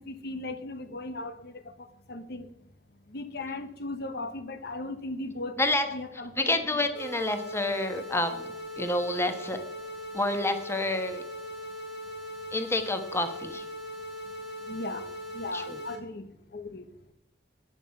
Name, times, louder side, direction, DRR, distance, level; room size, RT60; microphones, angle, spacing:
voice 1, 0.0-2.5 3.1-5.5 5.9-6.9 14.6-15.1 15.3-16.9, left 2 dB, 65° left, 9 dB, 1.0 m, -37 dB
voice 2, 6.4-9.6 10.1-11.2 12.5-13.6 15.5-15.6, left 1 dB, 15° left, 7 dB, 1.2 m, -28 dB
sound 1, 6.9-15.9, equal, 85° left, 5.0 m, -40 dB
11.5 x 9.3 x 5.8 m, 0.84 s
head